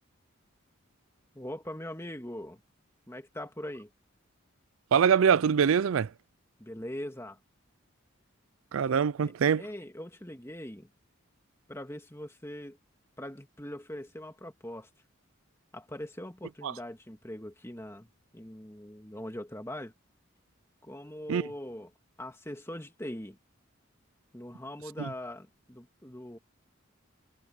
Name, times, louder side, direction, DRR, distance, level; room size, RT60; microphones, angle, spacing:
voice 1, 1.3-2.6 3.1-3.9 6.6-7.4 9.2-9.3 9.6-10.9 11.7-12.8 13.2-14.9 15.7-19.9 20.8-21.9 22.2-23.4 24.3-26.4, left 1 dB, 10° left, 2.0 m, -41 dB
voice 2, 4.9-6.1 8.7-9.6 16.6-16.7 21.3-21.5 25.0-25.1, right 7 dB, 75° right, 0.4 m, -24 dB
head